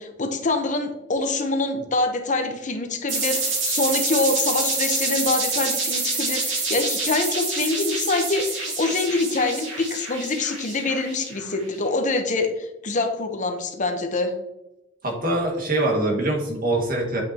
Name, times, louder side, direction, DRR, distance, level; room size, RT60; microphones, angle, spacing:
voice 1, 0.0-14.3, left 3 dB, 40° left, 5 dB, 0.8 m, -25 dB
sound 1, 3.1-11.6, right 3 dB, 70° right, 2.5 m, -27 dB
voice 2, 15.0-17.2, right 2 dB, 50° right, 0 dB, 1.8 m, -23 dB
8.3 x 5.6 x 2.8 m, 0.93 s
head